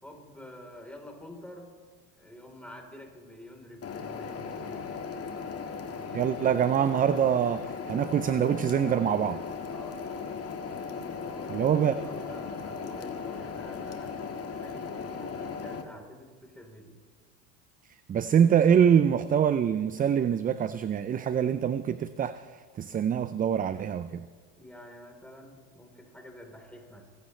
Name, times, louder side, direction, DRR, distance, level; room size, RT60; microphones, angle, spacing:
voice 1, 0.0-1.7 2.2-4.9 5.9-6.3 9.7-10.0 11.2-14.3 14.6-17.0 24.6-27.1, equal, 5° left, 1 dB, 3.7 m, -48 dB
sound 1, 3.8-15.8, left 5 dB, 35° left, 1.8 m, -37 dB
voice 2, 6.1-9.4 11.5-12.0 18.1-24.3, right 8 dB, 20° right, 14 dB, 0.4 m, -25 dB
24.5 x 15.0 x 3.2 m, 1.5 s
supercardioid pair, 95°, 39 cm